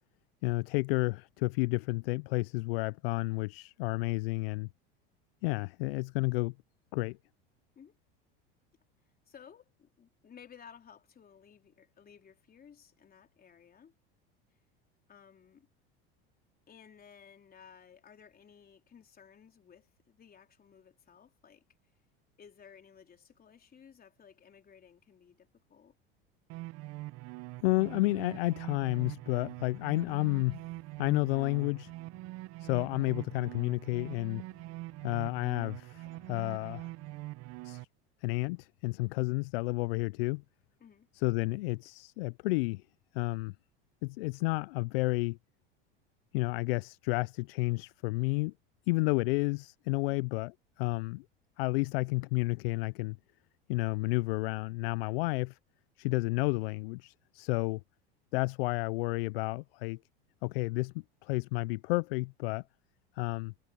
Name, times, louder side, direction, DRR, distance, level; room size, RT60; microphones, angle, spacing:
voice 1, 0.4-4.7 5.4-6.5 6.9-7.2 27.6-30.6 31.0-31.9 32.6-34.4 35.0-36.9 37.6-37.9 38.2-40.4 41.1-42.8 43.1-43.5 44.0-45.4 46.3-48.5 48.9-51.2 51.6-53.2 53.7-55.6 56.0-57.8 58.3-60.0 60.4-62.6 63.2-63.5, left 24 dB, 75° left, 0.5 m, -31 dB
voice 2, 9.3-13.9 15.1-15.7 16.7-21.6 22.4-25.9 40.8-41.1 50.1-50.3, left 7 dB, 30° left, 4.0 m, -56 dB
sound 1, 26.5-37.8, right 19 dB, 55° right, 1.0 m, -44 dB
supercardioid pair, 95°, 29 cm